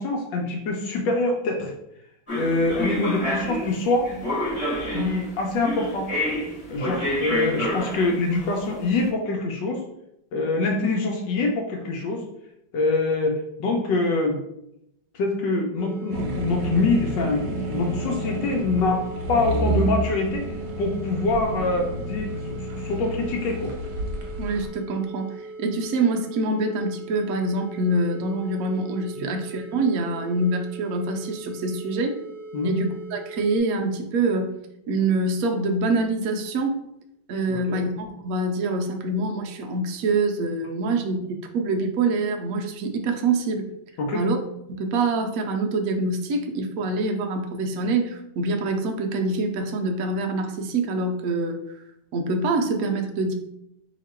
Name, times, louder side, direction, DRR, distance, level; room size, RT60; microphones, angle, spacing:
voice 1, 0.0-1.7 2.3-4.1 4.9-6.1 6.7-9.8 10.3-12.2 12.7-14.4 15.1-19.0 19.3-20.4 20.8-22.4 22.8-23.7 29.2-29.3 32.5-32.7 37.5-37.8 44.0-44.2, left 2 dB, 75° left, 1 dB, 1.2 m, -24 dB
sound 1, 2.3-9.0, left 1 dB, 20° left, 1.1 m, -28 dB
sound 2, 15.8-33.6, right 2 dB, 40° left, 0.4 m, -40 dB
sound 3, 16.1-24.7, right 1 dB, 65° right, 1.1 m, -30 dB
voice 2, 24.4-32.2 32.6-34.6 34.9-36.8 37.3-41.2 41.5-43.7 44.1-44.4 44.8-51.6 52.1-53.3, right 2 dB, 80° right, 3 dB, 0.8 m, -25 dB
2.9 x 2.9 x 4.2 m, 0.81 s
omnidirectional pair, 2.2 m